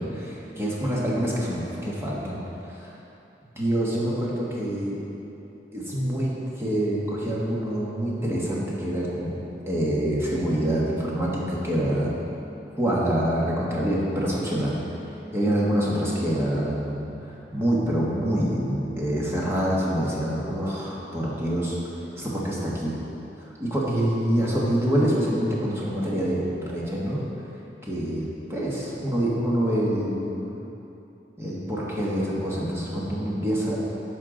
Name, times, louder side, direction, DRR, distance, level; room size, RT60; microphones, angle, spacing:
voice 1, 0.0-2.4 2.7-2.9 3.6-5.0 5.7-9.4 9.7-12.1 12.8-14.8 15.3-22.9 23.6-27.2 27.8-30.6 31.4-33.8, equal, 15° right, -5 dB, 1.3 m, -26 dB
10.0 x 5.6 x 3.8 m, 3.0 s
head